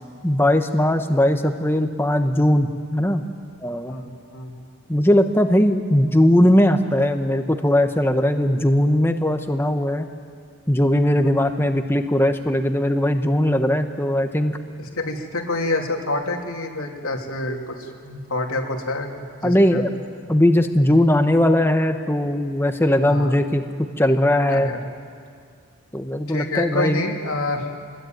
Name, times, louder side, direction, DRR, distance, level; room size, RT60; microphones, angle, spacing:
voice 1, 0.2-3.2 3.6-3.9 4.9-10.1 10.7-14.6 19.4-19.9 20.3-23.7 24.0-24.7 25.9-27.0, left 1 dB, 10° left, 6 dB, 1.1 m, -19 dB
voice 2, 3.9-4.6 11.1-11.3 14.8-20.3 23.0-23.4 24.5-24.8 26.3-27.7, left 2 dB, 80° left, 2 dB, 2.9 m, -28 dB
26.0 x 21.0 x 9.2 m, 2.2 s
head